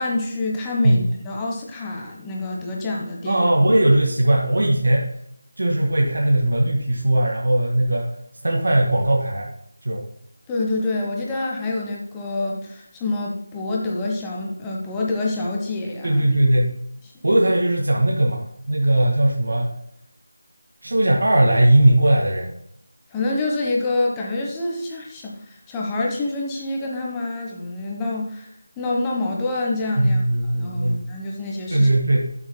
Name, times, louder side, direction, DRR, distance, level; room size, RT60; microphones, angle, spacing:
voice 1, 0.0-3.5 10.5-16.2 23.1-28.5 28.8-30.2 30.5-31.9, left 2 dB, 10° left, -2 dB, 1.2 m, -26 dB
voice 2, 3.2-5.2 5.6-8.1 8.4-9.5 9.8-10.1 16.0-16.7 17.2-19.7 20.8-22.6 30.0-31.0 31.7-32.3, right 1 dB, 70° right, -1 dB, 1.9 m, -19 dB
12.0 x 7.1 x 2.2 m, 0.71 s
figure-of-eight pair, 170°, 0 cm